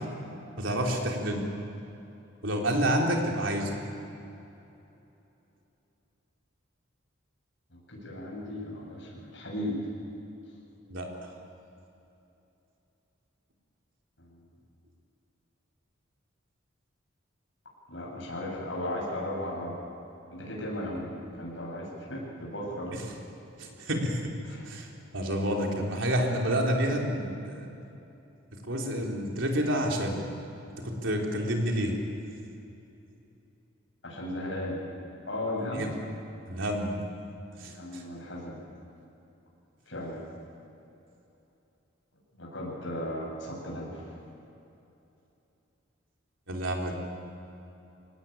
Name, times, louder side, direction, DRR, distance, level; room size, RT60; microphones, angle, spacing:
voice 1, 0.6-1.5 2.4-3.7 10.9-11.1 23.6-24.3 24.7-24.9 25.1-27.7 28.7-30.2 30.8-32.0 35.7-36.0 36.5-37.0 37.6-38.0 46.5-46.9, equal, 75° right, 0 dB, 3.8 m, -29 dB
voice 2, 7.7-9.8 14.2-14.4 17.9-19.8 20.3-23.0 24.4-24.7 34.0-34.8 35.2-36.0 37.7-38.6 39.9-40.2 42.3-44.0, left 1 dB, 70° left, -3 dB, 7.9 m, -36 dB
24.0 x 18.5 x 9.1 m, 2.9 s
head